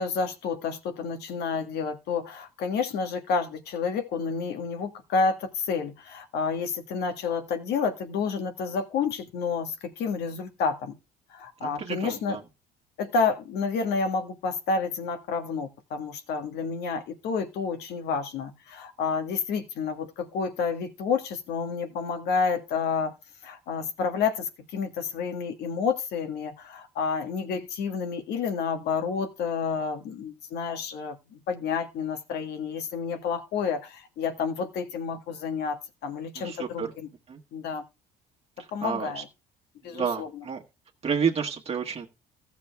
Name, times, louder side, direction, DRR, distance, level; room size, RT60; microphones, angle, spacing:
voice 1, 0.0-10.9 11.3-12.4 13.0-23.1 23.4-37.1 37.5-37.8 38.7-39.2 39.8-40.4, left 5 dB, 75° left, 1.7 m, -30 dB
voice 2, 11.6-12.4 36.3-36.9 37.3-37.4 38.8-39.2 39.9-40.6 41.0-42.1, right 6 dB, 35° right, 1.5 m, -30 dB
14.5 x 7.0 x 3.4 m
cardioid pair, 110°, 17 cm